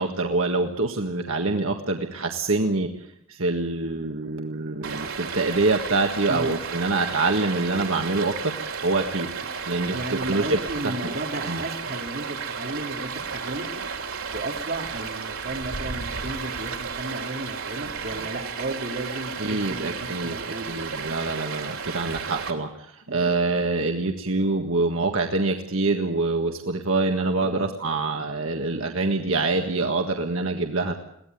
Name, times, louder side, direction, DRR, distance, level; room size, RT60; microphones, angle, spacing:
voice 1, 0.0-8.5 8.8-9.3 9.6-11.1 11.5-11.6 19.4-30.9, right 3 dB, 70° right, 4 dB, 1.7 m, -25 dB
Stream, 4.8-22.5, right 5 dB, 85° right, 3.3 m, -33 dB
voice 2, 9.9-13.7 14.3-20.9 23.1-23.2 27.4-27.7, right 1 dB, 50° right, 3 dB, 3.1 m, -34 dB
22.0 x 17.0 x 9.3 m, 0.74 s
head